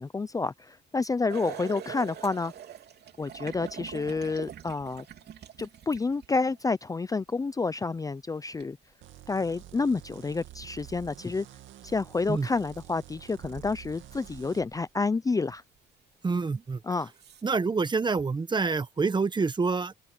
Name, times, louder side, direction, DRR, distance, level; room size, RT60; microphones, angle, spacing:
voice 1, 0.0-2.5 3.2-5.0 5.6-8.8 9.3-11.5 11.8-15.6 16.8-17.1, left 4 dB, 15° left, 0.6 m, -29 dB
sound 1, 1.3-6.6 8.6-8.7 11.5-11.6 12.4-12.7 13.3-15.0 15.5-15.6 16.5-16.6 17.1-17.4, right 9 dB, 55° right, 3.2 m, -44 dB
sound 2, 9.0-14.6, right 13 dB, 75° right, 2.2 m, -49 dB
voice 2, 16.2-16.8 17.4-20.1, right 4 dB, 20° right, 1.0 m, -27 dB
open air
cardioid pair, 110°, 20 cm